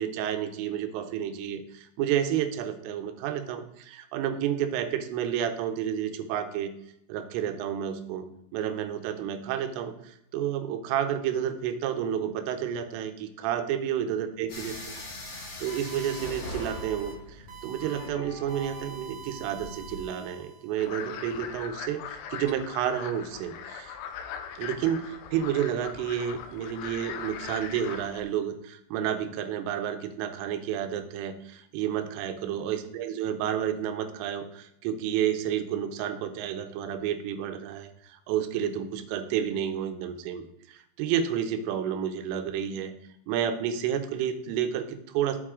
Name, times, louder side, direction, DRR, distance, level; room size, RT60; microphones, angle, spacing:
voice 1, 0.0-6.7 7.1-8.3 8.5-14.7 15.2-24.0 24.6-42.9 43.3-45.4, right 9 dB, 90° right, 9 dB, 3.4 m, -30 dB
sound 1, 14.5-20.0, left 1 dB, 35° left, 3.1 m, -41 dB
sound 2, 15.7-16.3 16.6-17.1 17.5-18.1 18.5-20.8, right 7 dB, 50° right, 2.7 m, -46 dB
sound 3, 20.8-28.2, left 7 dB, 90° left, 3.2 m, -40 dB
9.7 x 7.4 x 3.7 m, 0.76 s
omnidirectional pair, 5.7 m